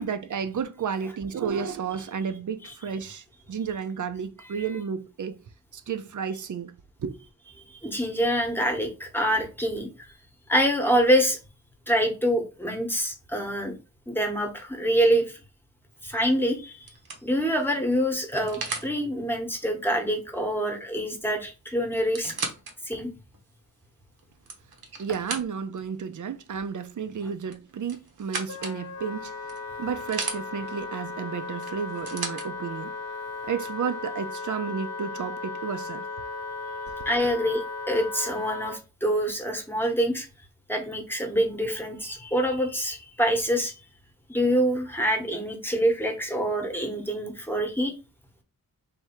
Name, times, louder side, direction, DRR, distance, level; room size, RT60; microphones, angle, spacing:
voice 1, 0.0-5.4 5.7-6.7 7.0-7.2 25.0-29.4 29.8-32.9 33.4-36.0, right 6 dB, 55° right, 0.6 m, -32 dB
voice 2, 7.7-9.9 10.5-11.4 11.9-13.7 14.1-15.4 16.0-16.9 17.2-22.3 22.9-23.1 37.0-40.3 40.7-43.7 44.3-47.9, equal, 5° left, 1.0 m, -26 dB
sound 1, 16.0-16.3 16.9-18.9 21.0-21.1 21.3-21.4 21.9-22.7 23.3-23.4 24.2-25.8 27.5-28.8 29.5-30.4 31.6-32.5 33.4-33.5, right 4 dB, 75° right, 1.0 m, -36 dB
Wind instrument woodwind instrument, 28.5-38.8, left 3 dB, 45° left, 0.8 m, -36 dB
3.5 x 2.7 x 4.3 m
wide cardioid pair, 105°, 37 cm